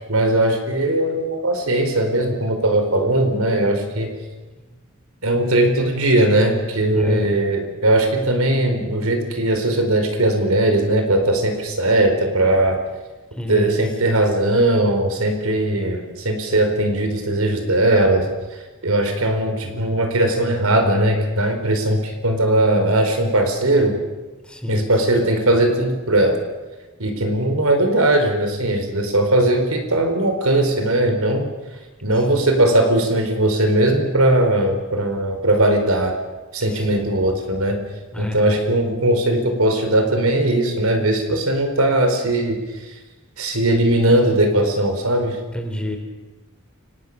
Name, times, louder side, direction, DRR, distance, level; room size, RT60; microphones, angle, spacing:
voice 1, 0.1-4.1 5.2-12.8 13.5-18.3 18.8-24.0 24.7-26.4 27.0-31.5 32.0-36.1 36.5-37.8 38.2-42.6 43.4-45.4, right 1 dB, 85° right, 5 dB, 4.6 m, -19 dB
voice 2, 6.9-7.3 13.3-13.9 24.4-24.9 32.1-32.3 36.7-37.0 38.1-38.6 45.5-46.0, left 1 dB, 5° left, 4 dB, 3.6 m, -28 dB
29.5 x 19.0 x 6.8 m, 1.2 s
head